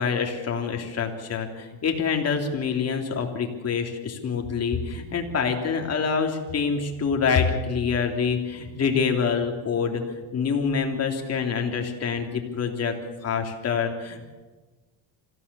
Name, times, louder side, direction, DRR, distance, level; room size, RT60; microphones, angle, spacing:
voice 1, 0.0-10.0 10.3-12.9 13.2-14.3, left 6 dB, 35° left, 3 dB, 3.3 m, -26 dB
25.5 x 16.0 x 7.0 m, 1.3 s
cardioid pair, 125°, 42 cm